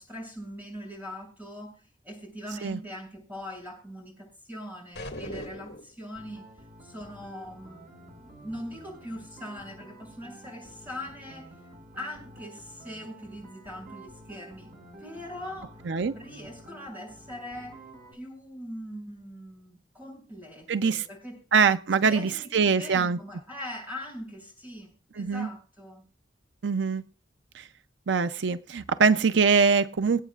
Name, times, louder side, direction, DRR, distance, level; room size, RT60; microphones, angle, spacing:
voice 1, 0.0-6.5 6.8-7.9 8.2-11.5 12.0-14.7 15.0-15.8 16.1-17.8 18.1-21.4 22.0-26.0, left 1 dB, 10° right, 7.6 m, -41 dB
sound 1, 4.9-6.0, left 1 dB, 60° left, 2.1 m, -38 dB
sound 2, 6.1-18.1, right 1 dB, 50° right, 4.3 m, -49 dB
voice 2, 20.7-21.0 21.5-23.2 25.2-25.5 26.6-27.0 27.5-27.7 28.1-30.2, right 5 dB, 75° right, 0.5 m, -23 dB
27.0 x 9.1 x 2.4 m
head